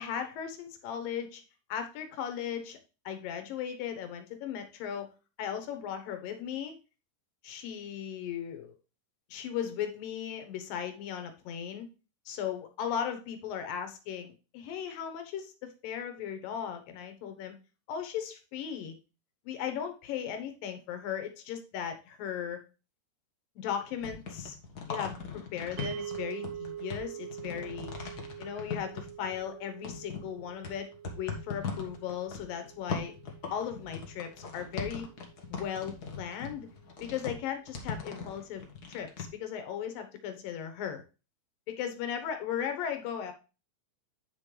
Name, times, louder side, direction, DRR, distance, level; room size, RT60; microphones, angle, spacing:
voice 1, 0.0-1.4 1.7-2.8 3.1-5.1 5.4-6.8 7.4-8.7 9.3-11.9 12.3-17.6 17.9-19.0 19.5-22.6 23.6-24.6 24.9-27.9 28.4-33.1 33.5-35.1 35.5-36.7 37.0-41.0 41.7-43.3, left 8 dB, 75° left, 7 dB, 2.8 m, -37 dB
sound 1, 23.8-29.5 29.8-39.2, left 5 dB, 60° left, 1.0 m, -40 dB
sound 2, 25.8-36.1, right 10 dB, 85° right, 2.3 m, -45 dB
8.8 x 6.0 x 3.3 m, 0.31 s
omnidirectional pair, 4.0 m